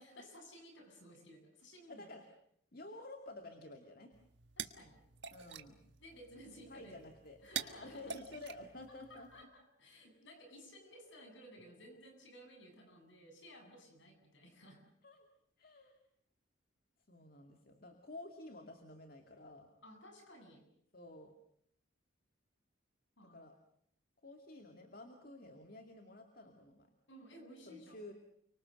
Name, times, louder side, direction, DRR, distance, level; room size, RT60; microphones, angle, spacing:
voice 1, 0.0-2.1 2.7-2.8 4.6-5.0 6.0-7.0 7.4-8.2 9.1-14.8 19.8-20.7 23.2-23.5 27.1-28.1, equal, 65° left, 4 dB, 7.9 m, -56 dB
voice 2, 1.9-2.2 2.7-4.1 5.3-5.8 6.7-9.5 15.0-15.3 15.6-16.0 17.1-19.7 20.9-21.3 23.2-23.5 24.2-26.9 27.7-28.1, left 2 dB, 45° left, 5 dB, 2.4 m, -52 dB
sound 1, 4.1-9.4, right 7 dB, 60° right, 1.6 m, -48 dB
30.0 x 25.0 x 6.5 m, 0.68 s
head